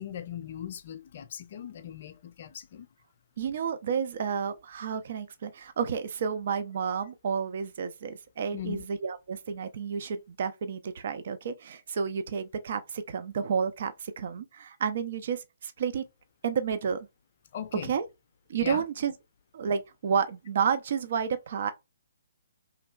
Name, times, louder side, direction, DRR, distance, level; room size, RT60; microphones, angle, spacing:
voice 1, 0.0-2.9 8.5-8.8 17.5-17.9 18.6-18.8, left 9 dB, 45° left, 0.6 m, -39 dB
voice 2, 3.4-16.0 16.4-17.1 17.8-18.0 18.5-19.1 19.5-21.7, right 6 dB, 50° right, 0.4 m, -31 dB
3.1 x 2.9 x 2.3 m
figure-of-eight pair, 130°, 0 cm